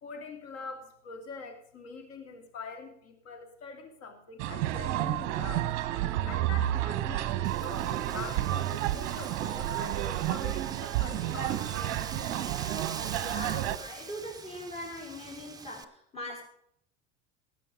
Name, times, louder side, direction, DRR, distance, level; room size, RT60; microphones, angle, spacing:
voice 1, 0.0-5.7 6.2-11.7, left 4 dB, 40° left, 5 dB, 2.7 m, -44 dB
sound 1, 4.4-13.8, right 13 dB, 45° right, 0.9 m, -31 dB
Wind, 7.4-15.8, right 5 dB, 10° right, 0.7 m, -44 dB
voice 2, 13.2-16.4, left 1 dB, 15° left, -1 dB, 4.7 m, -41 dB
18.5 x 7.7 x 5.1 m, 0.67 s
figure-of-eight pair, 75°, 37 cm